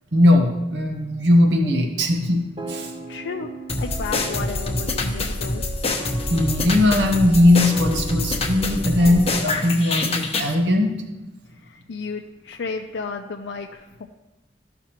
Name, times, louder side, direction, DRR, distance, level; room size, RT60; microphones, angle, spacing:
voice 1, 0.1-2.9 6.3-10.9, left 1 dB, 75° right, 4 dB, 1.0 m, -19 dB
sound 1, 2.6-9.4, right 1 dB, 30° right, 0.8 m, -37 dB
voice 2, 3.1-3.5 3.8-5.6 11.5-14.1, left 4 dB, 85° left, 3 dB, 0.5 m, -33 dB
sound 2, 3.7-10.5, left 2 dB, 35° left, 0.9 m, -26 dB
13.5 x 5.9 x 2.9 m, 1.0 s
head